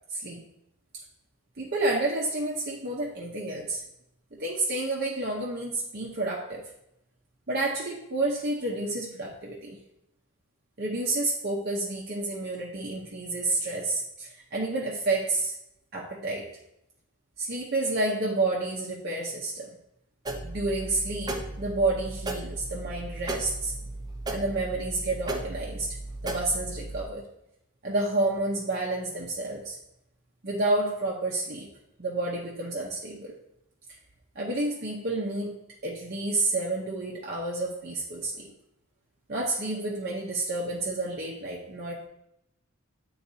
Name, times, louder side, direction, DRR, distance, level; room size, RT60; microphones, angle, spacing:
voice 1, 0.1-0.4 1.6-3.8 4.4-6.6 7.5-9.8 10.8-15.6 15.9-16.5 17.4-19.7 20.4-23.7 24.3-25.9 26.2-27.2 27.8-29.8 30.4-31.7 32.0-33.3 34.4-35.6 35.8-38.5 39.3-42.1, right 2 dB, 45° right, -3 dB, 0.8 m, -30 dB
sound 1, 20.3-27.1, right 2 dB, 20° right, 0.5 m, -36 dB
9.5 x 3.9 x 2.7 m, 0.81 s
head